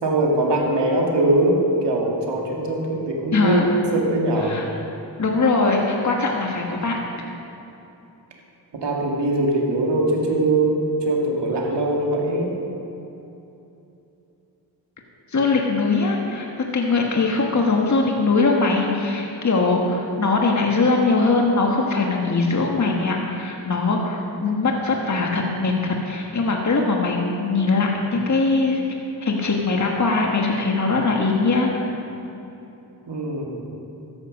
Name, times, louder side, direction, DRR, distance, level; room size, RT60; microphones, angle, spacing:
voice 1, 0.0-3.6 3.9-4.5 8.8-12.5 33.1-33.7, right 2 dB, 70° right, -1 dB, 2.3 m, -21 dB
voice 2, 3.3-3.7 4.4-4.7 5.2-7.0 15.3-28.8 29.2-31.8, left 3 dB, 40° left, 0 dB, 1.6 m, -21 dB
13.5 x 9.7 x 5.3 m, 2.9 s
cardioid pair, 65°, 44 cm